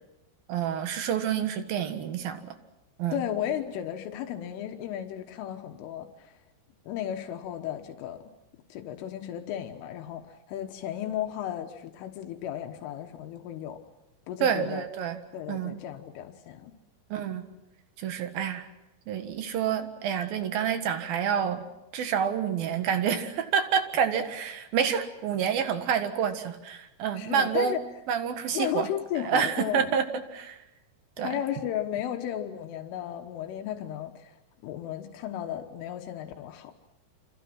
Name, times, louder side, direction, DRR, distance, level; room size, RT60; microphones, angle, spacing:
voice 1, 0.5-2.5 3.0-3.2 14.4-15.2 15.5-15.8 17.1-17.4 18.0-18.7 19.1-21.6 21.9-27.8 28.1-28.9 29.2-30.6 31.2-31.3, right 8 dB, 60° right, 8 dB, 2.9 m, -28 dB
voice 2, 3.1-6.3 6.9-8.2 8.7-13.8 14.3-14.9 15.3-16.7 27.2-27.8 28.5-30.0 31.2-34.4 34.6-36.7, left 11 dB, 80° left, 5 dB, 3.8 m, -34 dB
29.0 x 27.0 x 6.1 m, 0.92 s
omnidirectional pair, 5.6 m